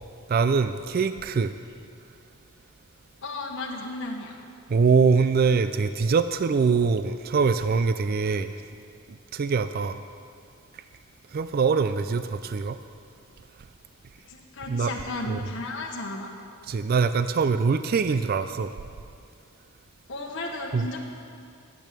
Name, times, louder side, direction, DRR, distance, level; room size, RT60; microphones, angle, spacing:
voice 1, 0.3-1.5 4.7-8.6 9.3-10.0 11.3-12.8 14.7-14.9 15.3-15.4 16.7-18.7 20.7-20.9, right 5 dB, 45° right, 11 dB, 0.3 m, -23 dB
voice 2, 3.2-4.4 14.2-16.3 20.1-21.1, left 2 dB, 55° left, 0 dB, 1.2 m, -34 dB
12.0 x 8.5 x 7.5 m, 2.4 s
head